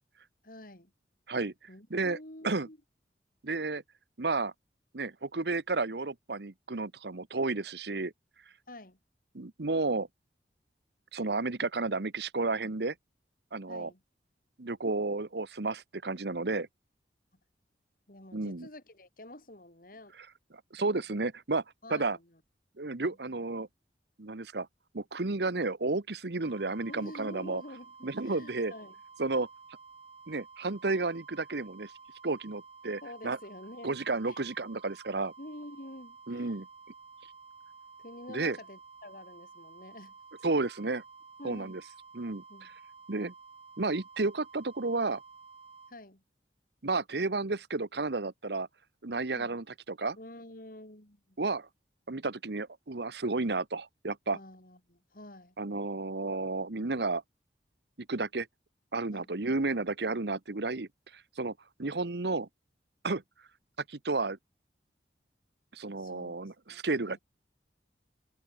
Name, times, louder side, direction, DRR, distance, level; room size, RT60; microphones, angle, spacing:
voice 1, 0.4-0.9 1.7-2.8 8.7-9.0 13.7-14.0 18.1-20.1 21.1-21.3 21.8-22.4 23.0-23.2 26.9-29.0 33.0-34.0 34.2-34.4 35.4-36.6 38.0-40.2 41.4-41.8 42.5-42.7 45.9-46.2 49.3-49.6 50.2-51.4 54.3-55.6 59.1-59.6 66.0-66.4 66.7-67.2, left 1 dB, 55° left, 5.2 m, -48 dB
voice 2, 3.4-3.8 4.2-4.5 4.9-8.1 9.3-10.1 11.1-12.9 13.5-13.9 14.6-16.7 18.3-18.7 20.7-21.6 21.9-22.2 22.8-23.7 24.2-24.7 24.9-27.6 28.0-28.7 29.2-29.5 30.3-31.9 32.2-33.4 33.8-35.3 36.3-36.6 38.3-38.6 40.4-41.0 41.4-41.8 42.1-42.7 43.1-43.3 43.8-45.2 46.8-48.7 49.0-50.2 51.4-51.7 52.1-54.4 55.6-57.2 58.1-58.5 58.9-60.9 61.4-61.5 61.8-62.5 63.0-63.2 63.9-64.4 65.7-67.2, right 3 dB, 70° right, 1.1 m, -32 dB
sound 1, 26.4-45.9, right 4 dB, 35° right, 6.6 m, -53 dB
head